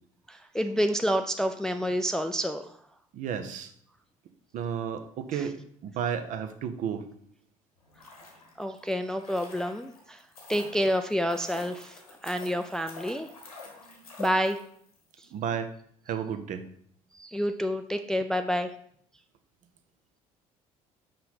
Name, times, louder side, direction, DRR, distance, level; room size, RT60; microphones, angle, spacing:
voice 1, 0.3-2.7 5.3-5.5 8.6-10.2 10.5-13.3 14.2-14.6 17.1-18.7, equal, 5° left, 7 dB, 0.3 m, -28 dB
voice 2, 3.1-3.7 4.5-7.1 15.3-15.7 16.1-16.7, right 8 dB, 45° right, 10 dB, 0.6 m, -32 dB
sound 1, 7.8-15.0 15.2-15.3, left 3 dB, 80° left, 1.1 m, -47 dB
5.6 x 5.1 x 4.0 m, 0.63 s
figure-of-eight pair, 55°, 19 cm